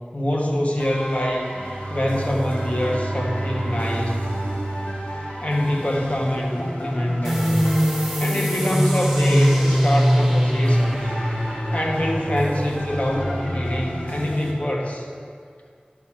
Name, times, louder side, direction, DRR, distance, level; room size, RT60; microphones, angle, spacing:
voice 1, 0.1-1.5 1.9-4.3 5.4-7.7 8.2-11.1 11.7-15.1, left 1 dB, 45° left, -1 dB, 1.3 m, -24 dB
sound 1, 0.8-14.5, equal, 65° left, 2.0 m, -35 dB
Bowed string instrument, 1.5-6.3, right 2 dB, 40° right, 0.5 m, -30 dB
sound 2, 7.2-14.5, equal, 5° right, 1.1 m, -22 dB
11.0 x 4.2 x 5.8 m, 2.1 s
wide cardioid pair, 40°, 3 cm